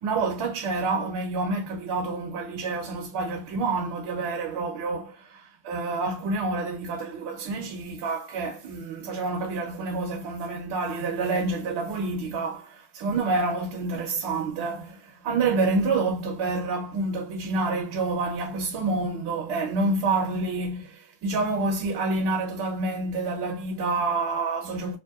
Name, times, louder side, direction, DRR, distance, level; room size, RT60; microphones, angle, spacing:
voice 1, 0.0-25.0, right 3 dB, 50° right, 0.7 m, -28 dB
2.8 x 2.2 x 2.3 m
cardioid pair, 135°, 50 cm